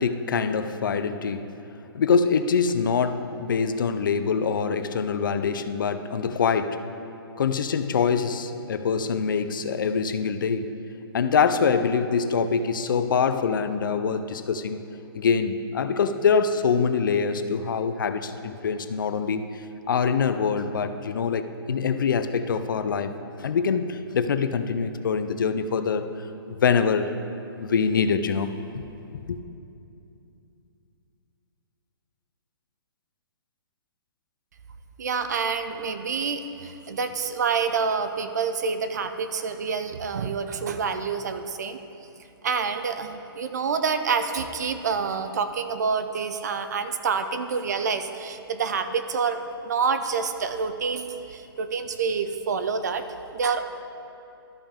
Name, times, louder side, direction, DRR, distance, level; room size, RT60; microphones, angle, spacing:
voice 1, 0.0-1.5 1.9-6.8 7.4-10.7 11.1-14.8 15.1-19.5 19.9-23.1 23.4-26.1 26.5-27.1 27.6-28.9 29.3-29.4, left 6 dB, 55° left, 10 dB, 0.4 m, -24 dB
voice 2, 35.0-41.8 42.4-49.4 49.6-53.0 53.3-53.6, right 5 dB, 45° right, 9 dB, 0.5 m, -27 dB
13.5 x 5.3 x 3.5 m, 2.7 s
hypercardioid pair, 175°, 13 cm